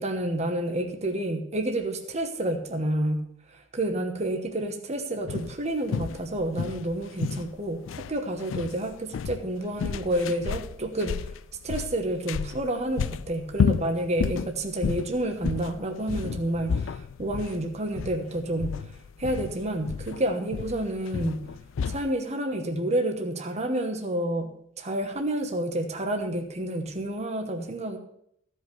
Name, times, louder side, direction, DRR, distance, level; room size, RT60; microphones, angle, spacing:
voice 1, 0.0-11.3 11.6-18.9 19.2-21.5 21.9-24.5 24.8-28.0, right 1 dB, 35° right, 5 dB, 1.1 m, -29 dB
sound 1, 5.3-22.1, left 6 dB, 75° left, 0.4 m, -32 dB
14.5 x 5.5 x 7.0 m, 0.71 s
head